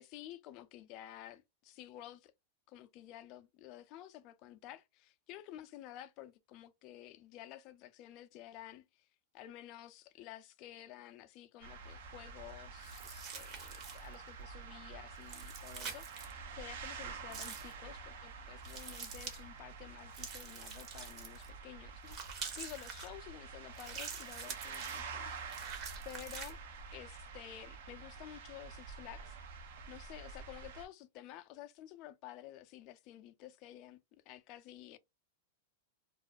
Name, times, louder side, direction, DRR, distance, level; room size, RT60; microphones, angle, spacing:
voice 1, 0.0-2.3 2.7-8.8 9.3-25.4 25.7-26.6 26.9-34.0 34.3-35.0, left 13 dB, 45° left, 0.4 m, -52 dB
sound 1, 11.6-30.9, right 5 dB, 70° right, 0.6 m, -48 dB
sound 2, 12.8-14.1 15.2-16.3 17.3-17.7 18.6-19.4 20.1-21.5 22.1-23.1 23.7-25.0 25.5-26.5, right 6 dB, 40° right, 0.9 m, -46 dB
2.3 x 2.0 x 2.5 m
hypercardioid pair, 120°, 0 cm